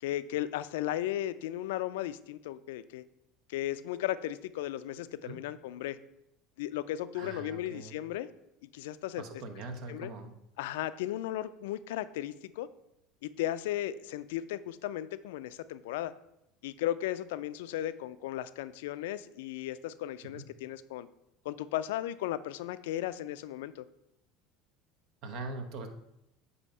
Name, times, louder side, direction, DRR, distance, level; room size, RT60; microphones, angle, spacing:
voice 1, 0.0-3.0 3.5-6.0 6.6-8.3 8.7-9.4 9.9-10.1 10.6-12.7 13.2-16.1 16.6-21.1 21.4-23.9, left 13 dB, 80° left, 14 dB, 0.3 m, -35 dB
voice 2, 7.1-8.0 9.2-10.3 20.2-20.4 25.2-25.9, right 3 dB, 65° right, 6 dB, 0.9 m, -42 dB
8.3 x 2.8 x 5.4 m, 0.83 s
supercardioid pair, 95°, 0 cm